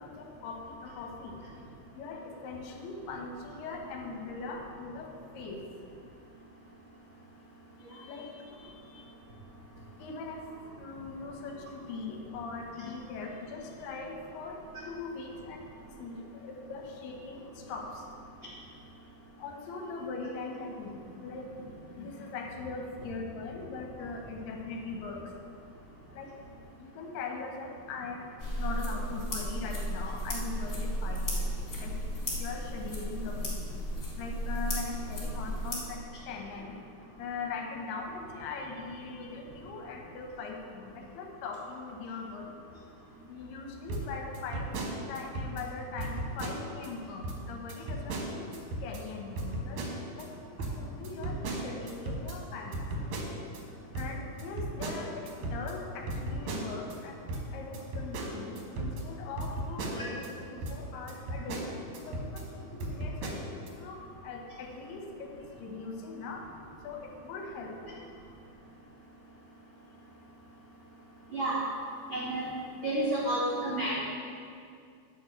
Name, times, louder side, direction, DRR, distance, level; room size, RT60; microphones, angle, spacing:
voice 1, 0.0-1.4 2.0-5.6 7.9-9.1 10.0-10.5 10.8-14.6 14.9-15.7 16.0-17.4 17.7-18.0 19.4-25.2 26.1-26.3 26.8-28.3 28.6-31.5 31.8-31.9 32.4-33.7 34.2-36.0 36.3-36.8 37.2-42.5 43.3-44.7 45.1-48.5 48.8-49.8 50.1-50.3 50.8-52.8 53.9-57.3 57.5-63.5 63.8-66.5 66.8-68.0, left 4 dB, 80° left, 2 dB, 3.0 m, -41 dB
sound 1, 28.4-35.7, equal, 35° left, 1.3 m, -34 dB
sound 2, 43.9-45.7 46.0-46.9 47.2-47.4 47.7-49.0 49.4-50.3 50.6-53.6 53.9-57.0 57.3-60.3 60.6-60.8 61.1-62.5 62.8-63.7, right 1 dB, 65° right, 2.0 m, -36 dB
voice 2, 72.1-72.4 72.8-74.0, right 1 dB, 90° right, -6 dB, 1.1 m, -30 dB
10.0 x 4.5 x 7.8 m, 2.3 s
omnidirectional pair, 4.6 m